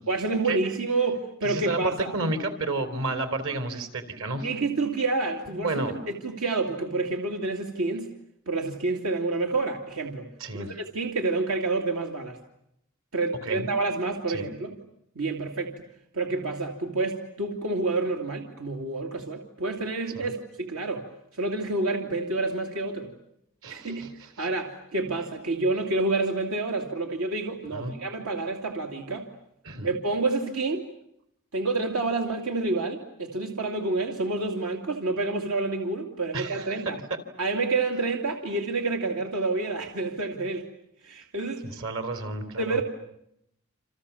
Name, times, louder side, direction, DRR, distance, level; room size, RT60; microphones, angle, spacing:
voice 1, 0.1-2.2 4.4-8.1 8.5-10.3 10.5-12.4 13.1-14.7 15.1-15.8 16.1-21.1 21.3-23.1 23.7-29.3 29.8-30.9 31.5-37.0 37.4-40.7 41.0-41.7 42.6-42.8, right 3 dB, 85° right, 2 dB, 2.8 m, -28 dB
voice 2, 1.4-4.5 5.6-6.1 10.4-10.7 13.5-13.7 14.3-14.5 20.1-20.3 23.6-24.1 24.4-24.5 27.7-27.9 29.6-29.9 36.3-36.7 41.6-42.8, right 2 dB, 65° right, 9 dB, 3.9 m, -31 dB
29.0 x 28.0 x 7.2 m, 0.78 s
head